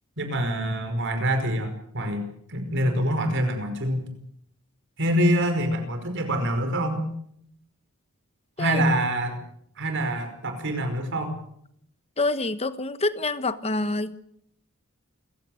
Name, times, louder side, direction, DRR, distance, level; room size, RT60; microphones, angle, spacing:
voice 1, 0.2-4.2 5.0-7.0 8.6-9.4 9.8-11.4, equal, 55° right, 7 dB, 5.3 m, -25 dB
voice 2, 12.2-14.2, left 2 dB, 30° left, 12 dB, 1.2 m, -27 dB
28.5 x 16.0 x 7.9 m, 0.70 s
head